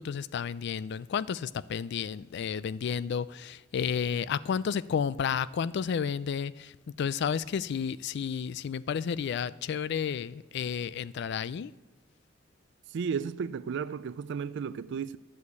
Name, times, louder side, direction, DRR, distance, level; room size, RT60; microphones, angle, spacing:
voice 1, 0.0-6.7 7.0-11.7, left 7 dB, 60° left, 0.3 m, -31 dB
voice 2, 12.9-15.2, right 6 dB, 65° right, 0.4 m, -33 dB
11.0 x 6.5 x 8.2 m
head